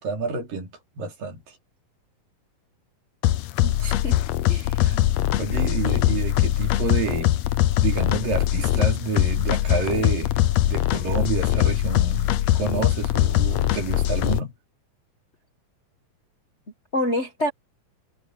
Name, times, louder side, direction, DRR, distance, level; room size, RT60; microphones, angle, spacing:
voice 1, 0.0-1.6 4.8-5.0 5.4-7.4 7.8-14.6, right 4 dB, 70° right, 5.2 m, -29 dB
sound 1, 3.2-14.4, left 13 dB, 90° left, 1.5 m, -22 dB
voice 2, 3.6-4.2 4.5-4.8 16.9-17.5, left 1 dB, 55° left, 0.7 m, -27 dB
omnidirectional pair, 4.1 m